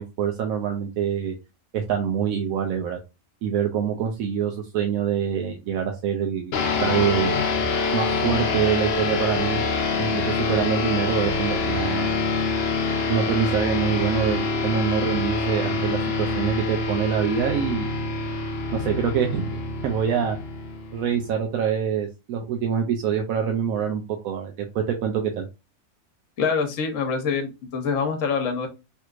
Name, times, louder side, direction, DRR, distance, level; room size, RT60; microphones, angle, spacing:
voice 1, 0.0-1.3 1.7-3.0 3.4-6.5 6.8-7.4 7.9-9.6 10.0-12.1 13.1-17.9 18.7-20.4 20.9-25.5, right 8 dB, 80° right, 2 dB, 1.0 m, -25 dB
sound 1, 6.5-21.3, left 3 dB, 55° left, 0.8 m, -25 dB
voice 2, 26.4-28.7, left 5 dB, 70° left, 6 dB, 1.2 m, -25 dB
3.3 x 3.0 x 2.4 m, 0.26 s
omnidirectional pair, 1.4 m